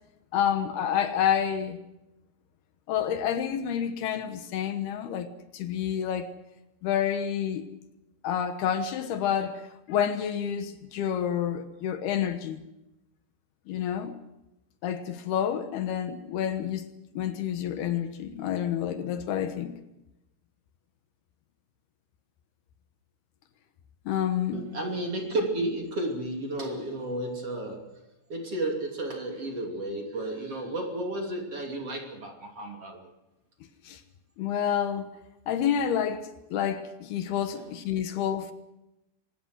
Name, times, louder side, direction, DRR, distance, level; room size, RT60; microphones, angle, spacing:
voice 1, 0.3-1.8 2.9-6.3 6.8-7.6 8.2-9.6 9.9-12.6 13.7-14.2 14.8-16.9 17.2-19.8 24.1-24.6 33.8-34.0 34.4-35.1 35.5-38.5, left 9 dB, 70° left, 3.1 m, -29 dB
voice 2, 24.5-33.1 37.5-37.7, right 1 dB, 40° right, 3.4 m, -33 dB
24.5 x 20.0 x 6.3 m
omnidirectional pair, 4.9 m